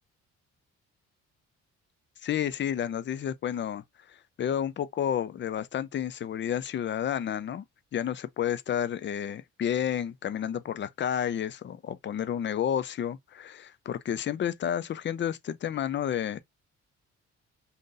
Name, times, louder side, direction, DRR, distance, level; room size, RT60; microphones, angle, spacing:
voice 1, 2.2-7.6 7.9-16.4, left 9 dB, 40° left, 0.4 m, -31 dB
2.6 x 2.5 x 3.8 m
cardioid pair, 90°, 30 cm